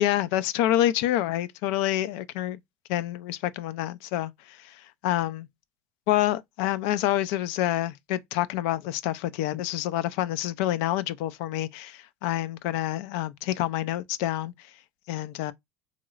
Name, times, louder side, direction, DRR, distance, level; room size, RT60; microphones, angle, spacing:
voice 1, 0.0-2.6 2.9-5.5 6.1-14.5 15.1-15.5, left 13 dB, 75° left, 0.3 m, -27 dB
2.9 x 2.9 x 2.3 m
supercardioid pair, 95°, 7 cm